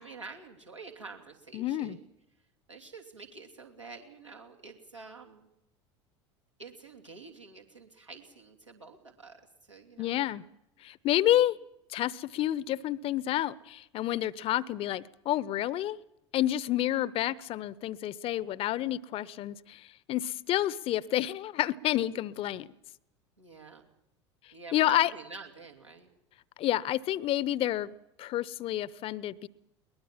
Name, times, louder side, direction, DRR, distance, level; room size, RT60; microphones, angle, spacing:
voice 1, 0.0-2.0 2.7-5.5 6.6-9.4 9.7-10.2 23.4-23.9 24.5-26.1, right 4 dB, 85° right, 0 dB, 2.8 m, -48 dB
voice 2, 1.5-2.0 10.0-10.4 10.8-11.6 11.9-16.0 16.3-22.7 24.7-25.1 26.6-29.5, left 13 dB, 40° left, 21 dB, 0.7 m, -29 dB
22.0 x 20.0 x 7.4 m, 0.85 s
figure-of-eight pair, 75°, 15 cm